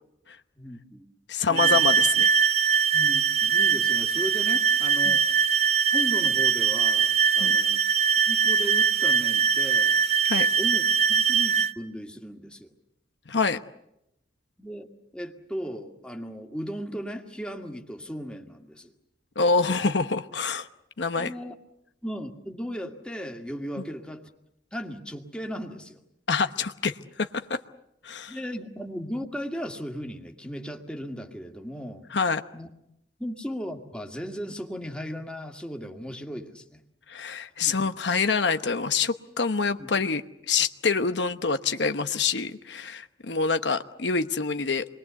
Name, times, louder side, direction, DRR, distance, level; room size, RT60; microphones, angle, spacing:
voice 1, 0.6-1.0 1.5-1.8 2.9-5.3 5.9-7.8 8.3-10.2 10.6-10.8 11.1-12.7 14.6-14.9 15.1-18.9 21.2-21.5 22.0-24.2 24.7-26.0 28.3-32.1 32.5-32.7 33.2-36.8 37.6-37.9 39.8-39.9, equal, 5° left, 3 dB, 2.0 m, -36 dB
voice 2, 1.3-2.3 5.1-5.2 7.4-7.6 10.2-10.5 13.3-13.6 19.4-20.7 21.0-21.3 26.3-27.6 28.0-28.4 32.1-32.4 37.1-40.2 40.5-45.0, left 4 dB, 70° left, 9 dB, 1.0 m, -26 dB
sound 1, 1.6-11.7, right 7 dB, 35° right, 0.9 m, -22 dB
27.5 x 22.0 x 8.1 m, 0.84 s
head